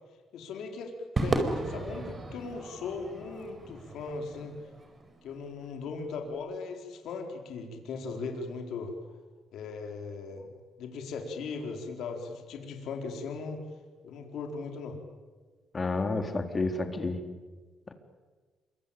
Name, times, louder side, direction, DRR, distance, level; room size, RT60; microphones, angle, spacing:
voice 1, 0.3-0.9 1.2-4.6 5.2-8.9 9.5-10.5 10.8-13.6 14.0-15.0, left 4 dB, 80° left, 3 dB, 4.4 m, -38 dB
Crowd / Fireworks, 1.2-5.6, right 2 dB, 35° right, 4.8 m, -34 dB
voice 2, 15.7-17.2 17.9-18.0, left 3 dB, 30° left, 6 dB, 3.7 m, -30 dB
27.0 x 25.0 x 8.7 m, 1.4 s
cardioid pair, 90°, 0 cm